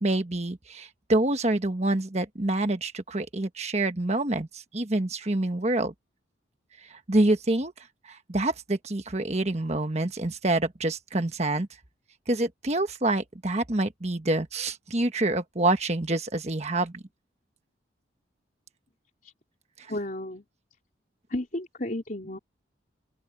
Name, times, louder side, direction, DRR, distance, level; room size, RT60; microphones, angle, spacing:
voice 1, 0.0-5.9 6.9-7.7 8.0-11.7 12.3-17.0, right 2 dB, 35° right, 1.3 m, -27 dB
voice 2, 19.9-20.4 21.3-22.4, left 1 dB, 45° left, 4.0 m, -32 dB
open air
head